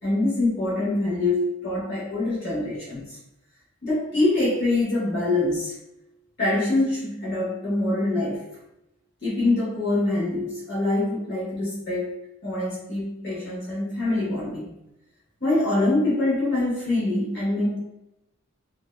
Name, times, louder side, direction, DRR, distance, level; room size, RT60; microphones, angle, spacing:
voice 1, 0.0-3.0 3.8-5.7 6.4-8.4 9.2-12.2 12.4-14.7 15.4-17.8, left 2 dB, 60° left, -8 dB, 1.1 m, -24 dB
2.7 x 2.2 x 2.2 m, 0.88 s
head